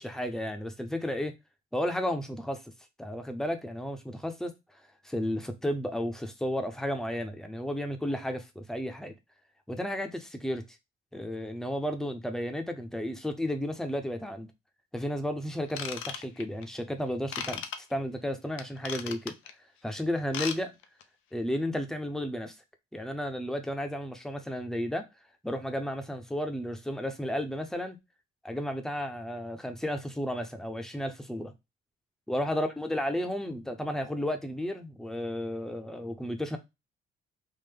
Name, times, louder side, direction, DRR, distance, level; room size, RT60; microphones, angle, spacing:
voice 1, 0.0-1.4 1.7-2.6 3.0-4.5 5.0-9.1 9.7-10.6 11.1-14.5 14.9-17.6 17.9-19.3 19.8-20.7 21.3-22.5 22.9-25.0 25.4-28.0 28.4-31.5 32.3-36.6, equal, ahead, 0.7 m, -33 dB
Ratchet pawl / Tools, 15.7-16.6 17.3-17.8 18.6-19.5 20.2-20.6 20.8-21.0 21.5-21.6, left 8 dB, 80° left, 0.5 m, -36 dB
3.6 x 2.0 x 3.3 m
cardioid pair, 90°, 20 cm